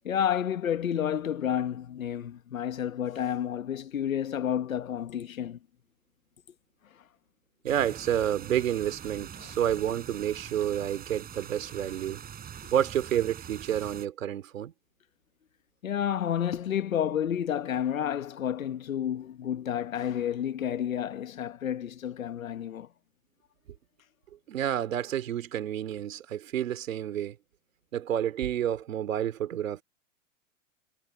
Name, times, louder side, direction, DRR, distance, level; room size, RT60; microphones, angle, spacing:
voice 1, 0.0-5.6 15.8-22.9, left 9 dB, 90° left, 1.4 m, -30 dB
voice 2, 7.6-12.2 12.7-14.7 24.5-27.3 27.9-29.8, right 10 dB, 80° right, 2.9 m, -29 dB
sound 1, 7.7-14.1, right 8 dB, 20° right, 5.2 m, -44 dB
hypercardioid pair, 120°, 39 cm